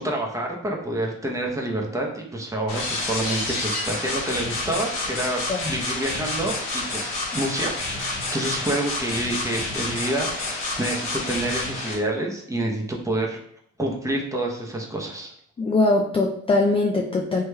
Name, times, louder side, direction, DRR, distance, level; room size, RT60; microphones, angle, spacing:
voice 1, 0.0-13.4 13.8-15.3, right 1 dB, 10° right, -1 dB, 0.7 m, -28 dB
sound 1, 2.7-11.9, left 2 dB, 85° left, 1.3 m, -29 dB
voice 2, 15.6-17.4, left 2 dB, 20° left, 1 dB, 0.3 m, -21 dB
3.3 x 2.9 x 2.2 m, 0.69 s
cardioid pair, 90°, 30 cm